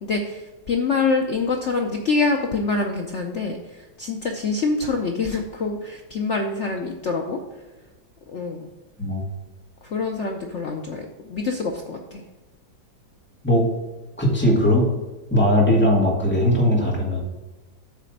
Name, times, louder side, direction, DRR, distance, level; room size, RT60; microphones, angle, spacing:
voice 1, 0.0-7.4 8.3-8.7 9.8-12.2, left 4 dB, 75° left, 2 dB, 0.6 m, -25 dB
voice 2, 14.2-14.9 15.3-17.2, equal, 5° left, -3 dB, 1.7 m, -19 dB
8.1 x 3.4 x 6.3 m, 1.2 s
omnidirectional pair, 2.1 m